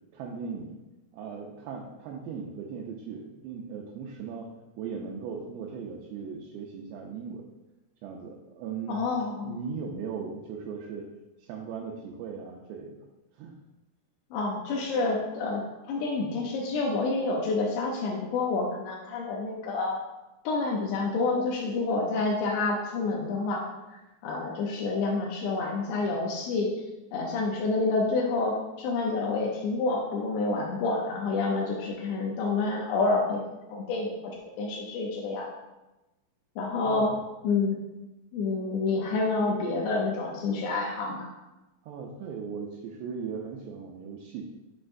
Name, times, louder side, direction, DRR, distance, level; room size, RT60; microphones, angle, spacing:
voice 1, 0.1-0.8 1.1-7.5 8.0-9.0 9.4-11.1 11.4-13.1 13.3-13.6 36.8-37.2 41.8-44.5, right 6 dB, 85° right, -1 dB, 2.7 m, -38 dB
voice 2, 8.9-9.6 14.3-15.6 15.9-20.0 20.5-23.7 24.2-26.7 27.1-33.4 33.7-35.5 36.6-37.1 37.4-37.8 38.3-41.3, left 3 dB, 85° left, -2 dB, 3.0 m, -28 dB
6.6 x 6.2 x 2.6 m, 1.0 s
omnidirectional pair, 4.9 m